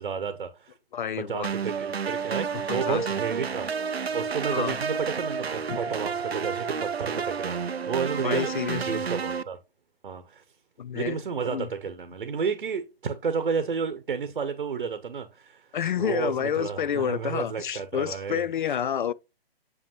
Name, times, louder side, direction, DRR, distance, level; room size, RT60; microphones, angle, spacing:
voice 1, 0.0-0.7 1.2-3.7 4.1-9.6 10.0-10.4 10.9-15.7 16.0-18.5, right 6 dB, 60° right, 1.0 m, -31 dB
voice 2, 0.9-1.5 2.5-3.1 4.5-4.8 5.7-5.8 8.2-9.0 10.8-11.2 11.5-11.7 15.7-19.1, left 8 dB, 55° left, 0.5 m, -29 dB
sound 1, 1.4-9.4, right 6 dB, 85° right, 0.6 m, -30 dB
7.9 x 6.8 x 3.1 m
figure-of-eight pair, 135°, 31 cm